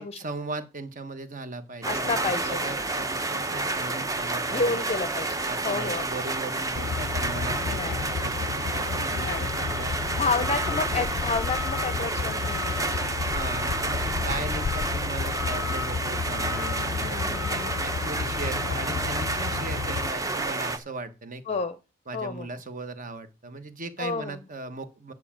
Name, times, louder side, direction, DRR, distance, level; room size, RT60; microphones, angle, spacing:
voice 1, 0.0-5.1 5.5-10.0 10.4-11.1 13.3-21.6 22.1-25.1, right 3 dB, 40° right, 10 dB, 1.2 m, -38 dB
sound 1, 1.8-20.8, right 2 dB, 15° right, 0.8 m, -30 dB
voice 2, 1.9-2.6 4.5-5.4 5.6-6.0 7.7-8.0 9.1-9.5 10.1-13.0 16.9-17.8 21.5-21.8 22.1-22.5 24.0-24.4, left 4 dB, 30° left, 11 dB, 0.6 m, -30 dB
Truck, 6.8-20.1, left 6 dB, 80° left, 0.4 m, -32 dB
9.6 x 4.8 x 7.4 m, 0.29 s
head